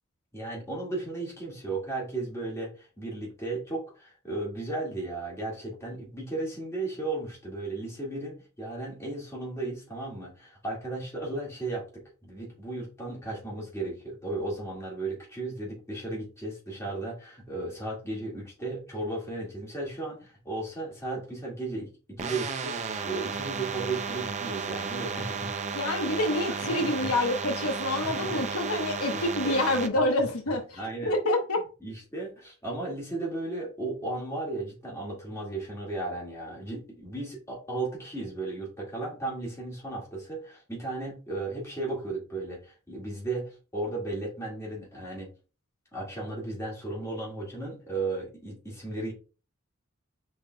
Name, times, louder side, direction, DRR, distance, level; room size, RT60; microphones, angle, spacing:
voice 1, 0.3-25.5 26.5-27.1 27.6-27.7 28.0-28.4 29.1-29.6 29.9-30.0 30.7-31.1 31.8-45.3 45.9-49.1, right 2 dB, 15° left, 1.9 m, -35 dB
sound 1, 22.2-29.9, right 5 dB, 35° right, 0.5 m, -33 dB
voice 2, 25.7-31.6, left 2 dB, 90° left, 1.1 m, -27 dB
5.4 x 3.9 x 2.3 m
head